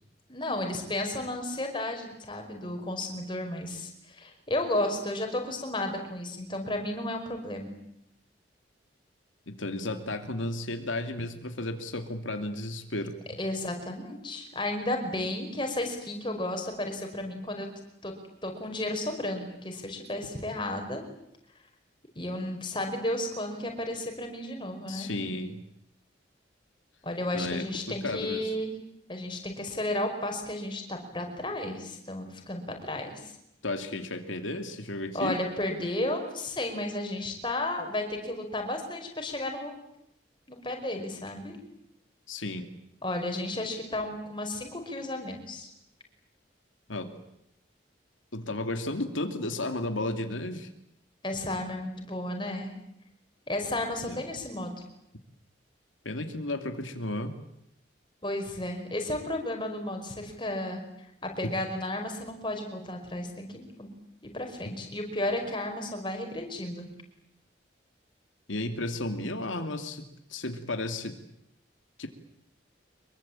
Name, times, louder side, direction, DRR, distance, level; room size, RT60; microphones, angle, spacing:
voice 1, 0.3-7.8 13.4-17.7 18.0-18.1 18.4-21.0 22.2-25.1 27.0-28.7 29.1-33.3 35.1-39.8 40.5-41.6 43.0-45.7 51.2-52.7 53.5-54.7 58.2-60.8 61.2-63.9 64.2-66.9, left 1 dB, 25° left, 4 dB, 5.3 m, -33 dB
voice 2, 9.5-13.2 24.9-25.6 27.3-28.5 33.6-35.4 42.3-42.7 46.9-47.1 48.3-50.7 54.1-54.2 56.0-57.3 68.5-70.0 70.3-71.2 72.0-72.1, left 2 dB, 85° left, 6 dB, 2.6 m, -33 dB
25.5 x 23.0 x 8.8 m, 0.79 s
head